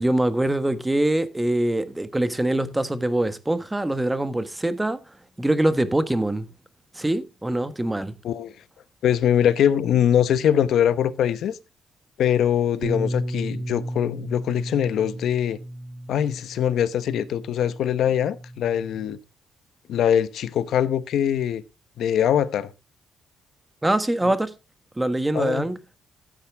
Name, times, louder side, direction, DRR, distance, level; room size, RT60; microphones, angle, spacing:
voice 1, 0.0-5.0 5.4-6.5 6.9-8.2 23.8-24.5 25.0-25.8, right 1 dB, 10° right, 1.3 m, -23 dB
voice 2, 9.0-11.6 12.2-15.6 16.1-19.2 19.9-21.6 22.0-22.7 25.3-25.6, left 9 dB, 70° left, 0.9 m, -22 dB
Bass guitar, 12.8-19.1, right 1 dB, 40° right, 2.5 m, -34 dB
14.0 x 8.8 x 3.5 m
cardioid pair, 90°, 0 cm